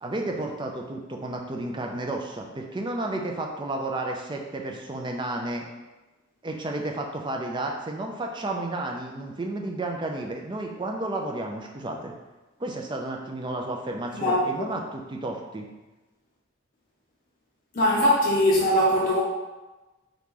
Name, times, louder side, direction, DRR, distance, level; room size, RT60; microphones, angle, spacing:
voice 1, 0.0-5.7 6.4-12.1 12.6-15.7, right 2 dB, 20° right, 1 dB, 0.4 m, -32 dB
voice 2, 17.8-19.2, left 1 dB, 40° left, -4 dB, 0.5 m, -21 dB
3.8 x 3.0 x 3.6 m, 1.1 s
head